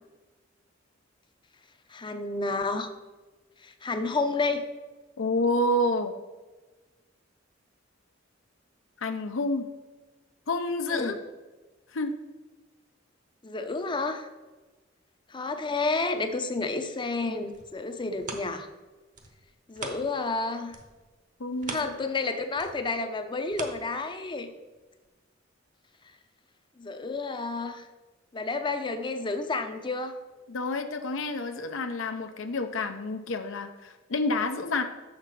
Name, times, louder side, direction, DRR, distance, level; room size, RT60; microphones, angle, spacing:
voice 1, 1.9-2.9 3.6-4.6 10.9-11.1 13.4-14.3 15.3-18.7 19.7-20.7 21.7-24.5 26.8-27.8 28.3-30.2, left 3 dB, 25° left, 8 dB, 0.6 m, -30 dB
voice 2, 5.2-6.1 9.0-9.7 10.5-11.2 11.9-12.1 21.4-22.0 30.5-34.8, left 2 dB, 75° left, 7 dB, 0.6 m, -29 dB
sound 1, 17.4-20.4 20.7-24.5 25.0-25.1, right 3 dB, 40° right, 0.9 m, -43 dB
6.7 x 6.6 x 4.6 m, 1.2 s
head